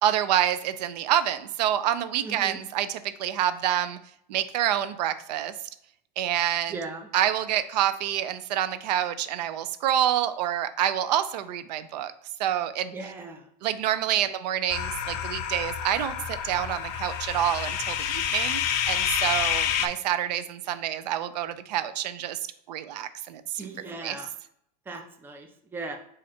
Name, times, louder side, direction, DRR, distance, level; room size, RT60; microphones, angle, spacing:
voice 1, 0.0-4.0 4.3-5.5 6.2-6.8 7.1-12.1 12.4-12.9 13.6-22.4 22.7-24.2, right 11 dB, 85° right, 12 dB, 0.5 m, -27 dB
voice 2, 2.2-2.6 6.7-7.1 12.9-13.4 23.6-24.3 24.9-26.0, right 3 dB, 10° right, 3 dB, 0.5 m, -38 dB
sound 1, 14.7-19.9, left 9 dB, 45° left, 0.5 m, -28 dB
4.2 x 2.5 x 4.2 m, 0.71 s
supercardioid pair, 145°, 21 cm